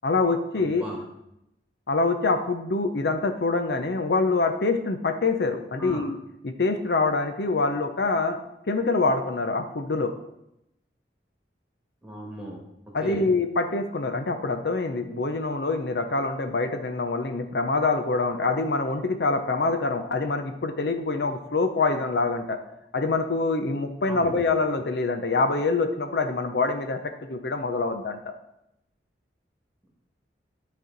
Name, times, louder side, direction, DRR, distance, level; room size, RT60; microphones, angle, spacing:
voice 1, 0.0-0.9 1.9-6.1 6.4-8.4 8.7-10.1 12.9-22.6 22.9-27.0 27.3-28.2, left 3 dB, 65° left, 7 dB, 0.6 m, -25 dB
voice 2, 0.5-1.0 5.8-6.1 12.0-12.6 13.0-13.2 24.1-24.3, equal, 5° right, -2 dB, 1.8 m, -37 dB
12.0 x 4.2 x 4.0 m, 0.83 s
head